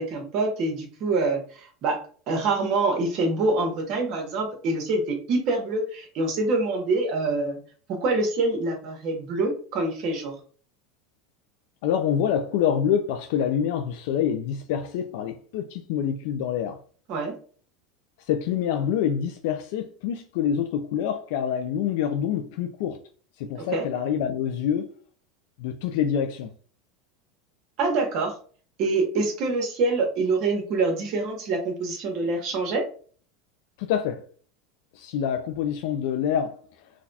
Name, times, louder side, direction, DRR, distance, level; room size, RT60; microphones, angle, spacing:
voice 1, 0.0-2.0 2.3-7.6 7.9-10.3 17.1-17.3 23.7-23.8 27.8-28.3 28.8-32.8, right 3 dB, 50° right, 1.2 m, -25 dB
voice 2, 11.8-16.8 18.2-23.0 23.4-24.9 25.6-26.5 33.8-34.3 34.9-36.9, left 8 dB, 70° left, 0.3 m, -26 dB
3.9 x 2.3 x 2.7 m
supercardioid pair, 140°, 0 cm